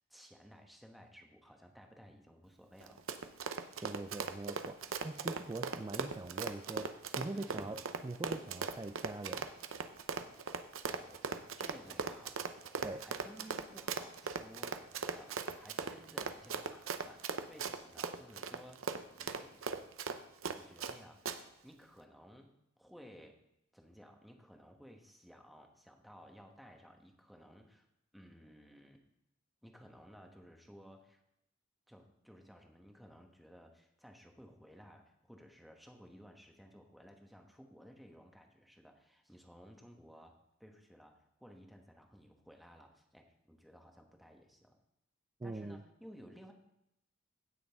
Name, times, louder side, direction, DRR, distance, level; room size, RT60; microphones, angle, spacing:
voice 1, 0.0-3.0 7.3-7.8 10.9-11.2 11.6-12.4 12.9-19.7 20.5-21.3 21.6-23.4 23.7-27.9 28.1-29.0 29.6-31.2 31.9-44.8 45.4-46.5, equal, ahead, 3 dB, 1.2 m, -57 dB
Run, 2.8-21.0 21.3-21.4, right 5 dB, 80° right, 0.7 m, -39 dB
voice 2, 3.8-9.5 12.8-13.1 45.4-45.8, right 2 dB, 20° right, 7 dB, 0.3 m, -43 dB
16.5 x 6.3 x 3.5 m, 0.82 s
head